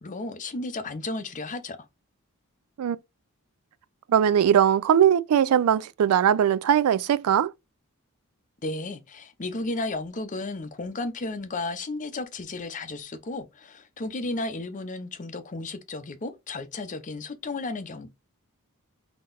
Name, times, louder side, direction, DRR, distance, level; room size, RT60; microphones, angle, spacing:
voice 1, 0.0-1.8 8.6-18.1, left 2 dB, 35° left, 0.6 m, -33 dB
voice 2, 4.1-7.5, right 9 dB, 80° right, 0.3 m, -20 dB
3.7 x 2.9 x 2.5 m
head